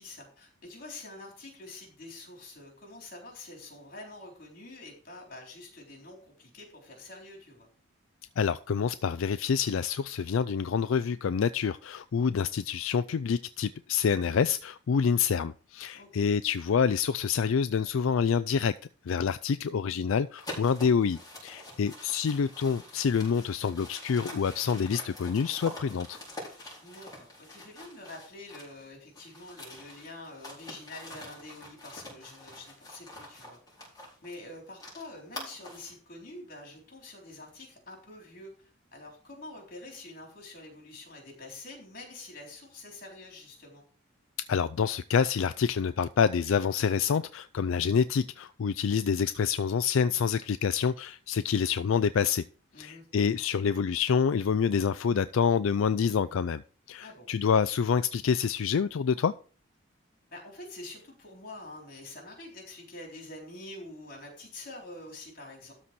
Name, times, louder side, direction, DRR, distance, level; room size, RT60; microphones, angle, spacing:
voice 1, 0.0-7.7 15.9-16.3 26.8-33.6 34.2-43.9 52.7-53.1 57.0-57.3 60.3-65.7, left 2 dB, 45° left, 0 dB, 3.9 m, -46 dB
voice 2, 8.4-18.7 19.1-26.2 44.5-52.4 52.8-56.6 56.9-59.3, left 6 dB, 75° left, 13 dB, 0.4 m, -27 dB
sound 1, 20.4-28.8 29.1-35.9, left 1 dB, 20° left, 4.2 m, -45 dB
12.5 x 4.2 x 6.0 m, 0.40 s
head